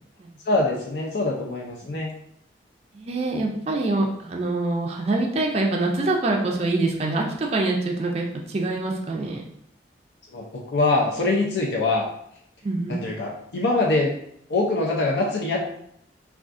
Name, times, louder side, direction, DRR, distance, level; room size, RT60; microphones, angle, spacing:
voice 1, 0.5-2.1 10.3-12.1 12.9-14.1 14.5-15.6, left 2 dB, 65° left, -1 dB, 0.5 m, -23 dB
voice 2, 2.9-9.4 12.6-13.0, right 2 dB, 35° right, 0 dB, 0.3 m, -25 dB
3.6 x 2.3 x 2.4 m, 0.72 s
head